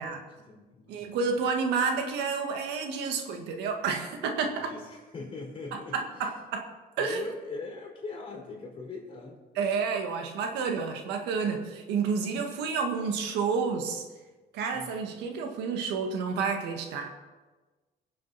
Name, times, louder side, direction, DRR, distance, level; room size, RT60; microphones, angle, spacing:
voice 1, 0.3-1.2 4.6-6.3 7.0-9.4 14.7-15.1, left 3 dB, 30° left, -2 dB, 4.9 m, -41 dB
voice 2, 0.9-4.7 5.7-6.7 7.0-7.2 9.6-14.0 14.5-17.1, right 5 dB, 85° right, 4 dB, 1.8 m, -30 dB
22.5 x 7.7 x 4.2 m, 1.3 s
cardioid pair, 110°, 17 cm